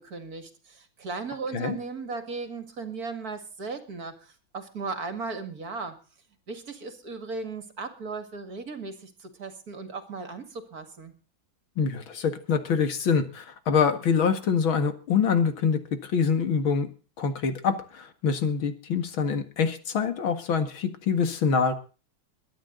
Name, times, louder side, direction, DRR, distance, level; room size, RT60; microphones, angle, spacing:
voice 1, 0.0-5.9 6.5-11.1, right 4 dB, 50° right, 9 dB, 2.4 m, -36 dB
voice 2, 11.8-16.9 17.2-21.7, left 6 dB, 85° left, 9 dB, 2.6 m, -25 dB
22.5 x 10.0 x 3.9 m, 0.35 s
omnidirectional pair, 2.1 m